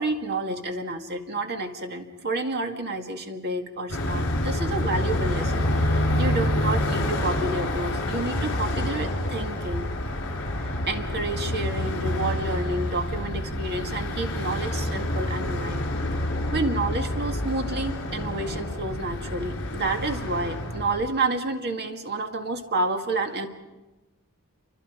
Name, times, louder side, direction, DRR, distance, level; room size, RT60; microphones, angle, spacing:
voice 1, 0.0-9.9 10.5-15.8 16.5-23.5, right 2 dB, 50° right, 5 dB, 2.0 m, -30 dB
Car passing by, 3.9-21.1, left 1 dB, 65° left, 3.4 m, -28 dB
28.5 x 25.0 x 5.1 m, 1.1 s
head